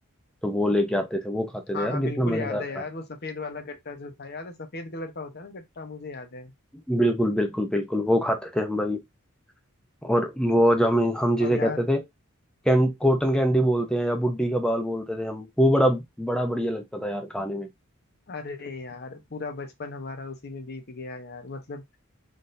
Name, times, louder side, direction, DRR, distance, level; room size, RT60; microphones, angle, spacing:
voice 1, 0.4-2.6 6.9-9.0 10.0-12.0 12.7-17.7, equal, 5° left, 0.5 m, -24 dB
voice 2, 1.7-6.5 11.4-11.8 18.3-22.0, left 3 dB, 50° left, 0.8 m, -36 dB
3.9 x 3.8 x 2.6 m
head